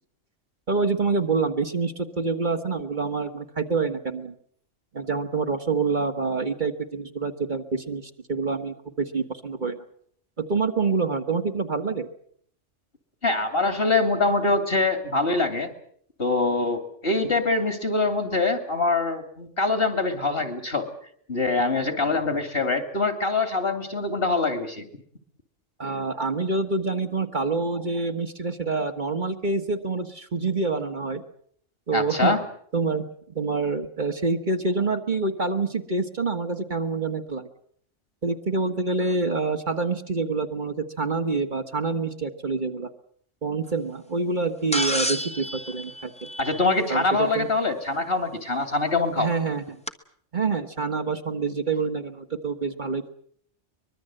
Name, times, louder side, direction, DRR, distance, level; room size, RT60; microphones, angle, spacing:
voice 1, 0.7-4.3 4.9-9.8 10.4-12.1 25.8-31.2 31.9-32.3 32.7-33.0 33.3-37.5 38.2-42.9 43.4-46.1 46.9-47.5 49.2-49.8 50.3-53.1, right 4 dB, 40° right, 6 dB, 1.6 m, -26 dB
voice 2, 13.2-15.7 16.2-20.9 21.3-24.8 31.9-32.4 46.4-49.3, left 3 dB, 55° left, 8 dB, 3.0 m, -24 dB
sound 1, 44.7-47.0 48.6-48.7 49.9-50.0, equal, 5° left, 1.2 m, -30 dB
24.0 x 21.5 x 7.8 m, 0.64 s
omnidirectional pair, 1.2 m